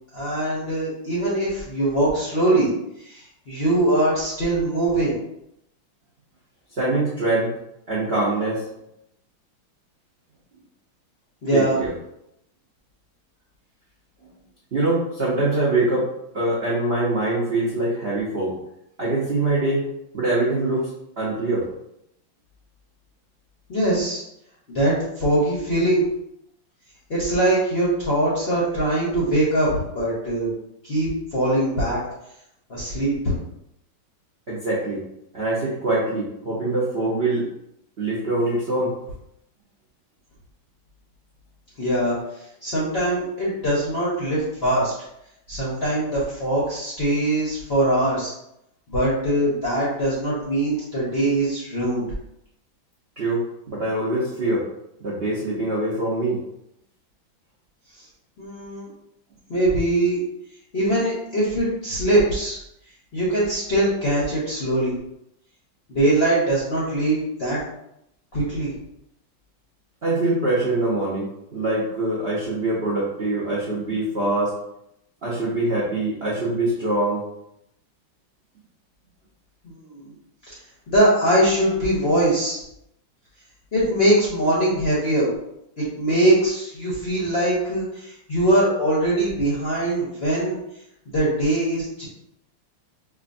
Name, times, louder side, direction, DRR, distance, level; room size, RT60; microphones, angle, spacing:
voice 1, 0.1-2.7 3.0-5.2 11.4-11.8 23.7-24.2 24.7-26.0 27.1-30.5 30.8-32.0 32.7-33.3 41.8-42.1 42.6-44.9 45.5-48.3 48.9-52.1 58.4-58.9 59.5-60.2 60.7-62.6 63.1-64.9 65.9-67.6 68.3-68.7 79.6-80.1 80.5-80.6 80.9-82.6 83.7-85.3 85.8-90.6 91.1-92.0, right 1 dB, 50° left, -7 dB, 0.8 m, -22 dB
voice 2, 6.7-7.5 7.9-8.7 11.5-11.9 14.2-14.3 14.7-16.1 16.3-18.6 19.0-19.9 20.1-20.9 21.2-21.7 34.5-35.0 35.3-37.4 38.0-38.9 53.2-54.6 55.0-56.4 70.0-74.5 75.2-77.2, right 2 dB, 65° right, -6 dB, 0.6 m, -23 dB
4.9 x 2.4 x 2.5 m, 0.80 s
omnidirectional pair, 2.2 m